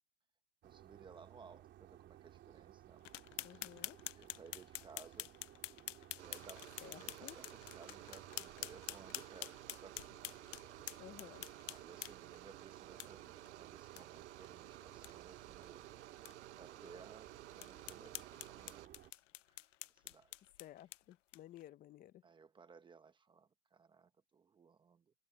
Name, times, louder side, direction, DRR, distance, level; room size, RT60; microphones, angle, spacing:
voice 1, 0.6-3.1 4.1-5.3 6.2-10.2 11.7-15.8 16.5-19.2 19.5-20.5 22.2-25.1, right 5 dB, 15° right, 1.2 m, -60 dB
sound 1, 0.6-19.1, right 13 dB, 30° right, 3.5 m, -59 dB
sound 2, 3.0-12.4 13.0-13.1 13.5-13.6 14.0-14.1 14.4-14.5 14.9-15.1 15.6-15.7 16.3-16.4 16.9-17.0 17.6-21.6, left 14 dB, 85° left, 0.7 m, -48 dB
voice 2, 3.4-4.0 6.8-7.3 11.0-11.4 20.6-22.1, left 13 dB, 25° left, 1.0 m, -55 dB
sound 3, 6.2-18.9, right 15 dB, 70° right, 1.5 m, -55 dB
hypercardioid pair, 135°, 36 cm